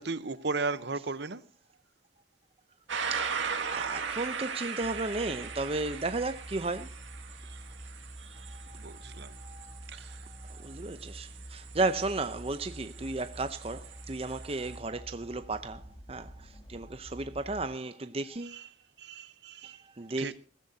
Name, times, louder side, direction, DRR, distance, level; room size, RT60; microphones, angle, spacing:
voice 1, 0.0-1.4 7.4-7.6 8.8-9.4 9.9-10.2 18.4-18.7 19.0-19.8 20.2-20.3, right 3 dB, 60° right, 0.9 m, -36 dB
sound 1, 2.9-14.8, right 6 dB, 80° right, 2.0 m, -39 dB
voice 2, 3.1-6.9 8.2-18.6 19.6-20.3, right 2 dB, 30° right, 0.6 m, -35 dB
sound 2, 4.8-17.7, right 1 dB, 25° left, 2.6 m, -47 dB
21.0 x 15.0 x 2.8 m
head